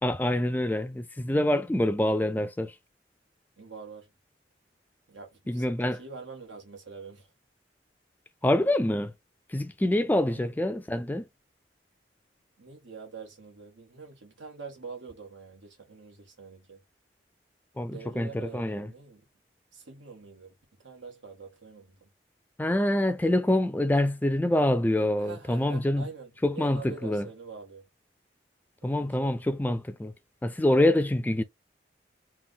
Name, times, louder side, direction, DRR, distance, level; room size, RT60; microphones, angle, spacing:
voice 1, 0.0-2.8 5.5-6.0 8.4-9.1 9.5-11.2 17.8-18.9 22.6-26.1 26.4-27.3 28.8-30.1 30.4-31.4, left 1 dB, 10° left, 0.3 m, -26 dB
voice 2, 3.6-4.1 5.1-7.3 10.3-10.5 12.6-16.8 17.8-19.2 19.7-20.5 20.8-22.1 25.2-27.9 28.9-29.4, right 5 dB, 90° right, 1.7 m, -45 dB
3.5 x 2.5 x 3.7 m
head